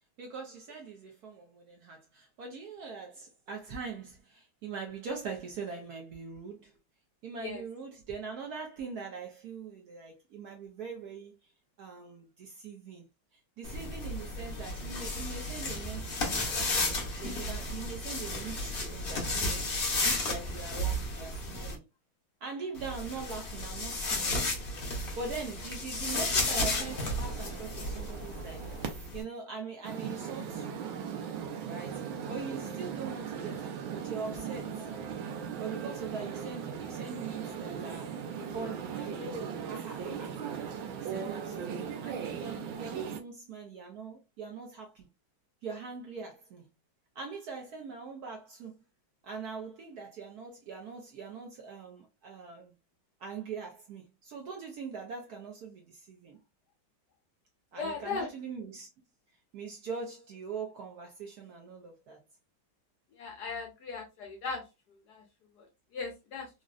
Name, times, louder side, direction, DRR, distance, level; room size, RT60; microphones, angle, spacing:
voice 1, 0.2-6.8 7.2-11.5 11.8-13.1 13.6-19.6 20.0-21.9 22.4-24.5 25.2-30.8 31.7-32.0 32.3-34.9 35.6-38.2 38.5-40.3 40.9-45.1 45.6-46.7 47.1-48.8 49.2-52.7 53.2-56.4 57.7-58.9 59.5-62.2, right 5 dB, 65° right, 1.0 m, -42 dB
sound 1, 13.6-21.7 22.7-29.2, left 2 dB, 85° left, 0.4 m, -33 dB
sound 2, 26.3-29.1 29.8-43.2, right 7 dB, 85° right, 1.4 m, -38 dB
voice 2, 57.8-58.3 63.2-64.6 65.1-65.2 65.9-66.5, left 4 dB, 65° left, 1.1 m, -37 dB
3.7 x 2.1 x 2.3 m
omnidirectional pair, 2.2 m